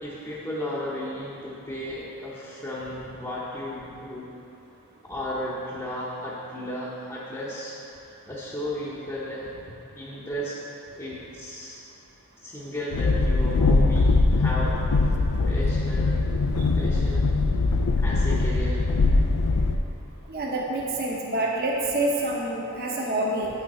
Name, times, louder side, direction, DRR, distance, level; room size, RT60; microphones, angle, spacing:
voice 1, 0.0-4.3 5.0-7.8 8.0-9.5 9.9-10.6 11.0-11.8 12.4-14.8 15.5-16.1 16.7-17.2 18.0-18.8, left 1 dB, 15° left, -8 dB, 0.8 m, -34 dB
Train, 12.9-19.8, left 3 dB, 85° left, 0.4 m, -22 dB
voice 2, 20.3-23.5, right 1 dB, 45° right, -3 dB, 0.9 m, -27 dB
8.8 x 6.1 x 4.2 m, 2.8 s
head